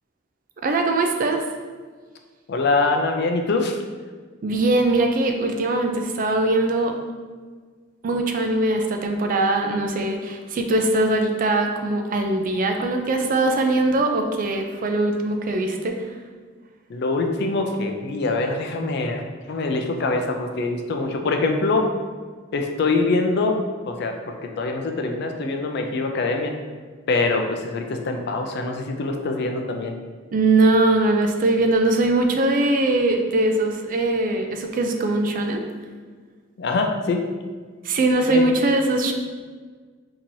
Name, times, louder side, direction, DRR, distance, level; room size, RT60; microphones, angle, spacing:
voice 1, 0.6-1.4 4.4-7.0 8.0-16.0 30.3-35.7 37.8-39.1, right 2 dB, 45° right, 4 dB, 0.4 m, -21 dB
voice 2, 2.5-3.8 16.9-21.9 22.5-26.5 27.1-29.9 36.6-37.2 38.3-38.4, left 3 dB, 60° left, 4 dB, 0.4 m, -24 dB
4.5 x 2.8 x 2.6 m, 1.5 s
head